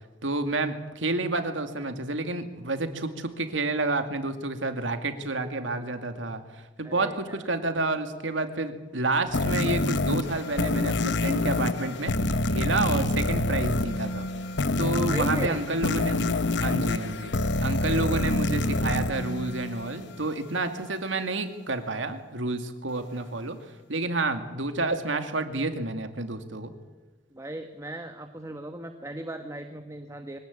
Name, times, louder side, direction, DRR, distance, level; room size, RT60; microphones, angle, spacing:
voice 1, 0.2-14.3 14.8-23.6 23.9-26.7, right 2 dB, 85° right, 7 dB, 2.3 m, -30 dB
voice 2, 6.8-7.5 12.9-13.2 15.1-15.6 17.8-18.2 27.3-30.4, right 1 dB, 15° right, 6 dB, 1.2 m, -38 dB
sound 1, 9.3-20.1, left 2 dB, 65° left, 1.0 m, -27 dB
24.0 x 17.5 x 8.6 m, 1.2 s
head